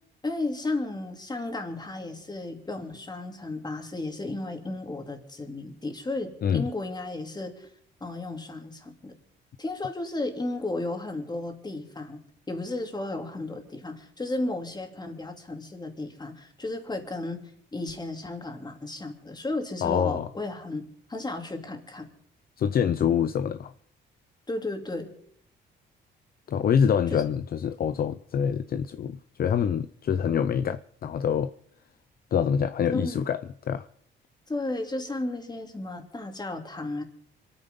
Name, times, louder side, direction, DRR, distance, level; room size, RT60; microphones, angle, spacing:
voice 1, 0.2-7.7 8.0-9.1 9.6-17.4 17.7-22.1 24.5-25.1 27.1-27.2 32.9-33.2 34.5-37.0, left 2 dB, 20° left, 2.8 m, -34 dB
voice 2, 19.8-20.3 22.6-23.7 26.5-31.5 32.3-33.4 33.7-33.9, left 8 dB, 50° left, 0.6 m, -25 dB
25.0 x 9.7 x 5.4 m
cardioid pair, 90°, 20 cm